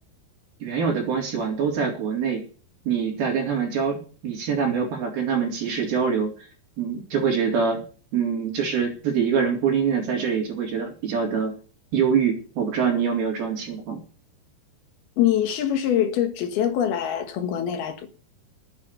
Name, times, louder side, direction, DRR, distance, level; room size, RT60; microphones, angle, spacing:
voice 1, 0.6-2.4 2.9-6.5 6.8-7.8 8.1-11.5 11.9-14.0, right 6 dB, 65° right, 5.4 m, -24 dB
voice 2, 15.2-18.1, left 10 dB, 75° left, 3.4 m, -24 dB
11.0 x 9.5 x 8.4 m
omnidirectional pair, 4.6 m